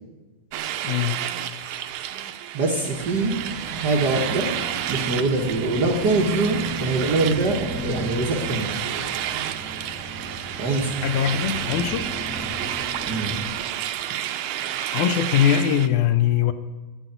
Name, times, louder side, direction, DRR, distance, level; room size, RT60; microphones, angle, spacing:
sound 1, 0.5-15.9, right 11 dB, 80° right, 2.0 m, -30 dB
voice 1, 0.8-1.2 11.0-12.1 14.9-16.5, left 10 dB, 80° left, 10 dB, 2.1 m, -21 dB
voice 2, 2.5-3.3 3.8-4.5 4.9-8.7 10.6-10.9 12.4-12.6 13.1-13.4, right 2 dB, 60° right, 0 dB, 1.0 m, -23 dB
sound 2, 2.8-13.6, right 1 dB, 15° right, 0.8 m, -35 dB
10.0 x 8.1 x 9.2 m, 1.2 s
omnidirectional pair, 3.6 m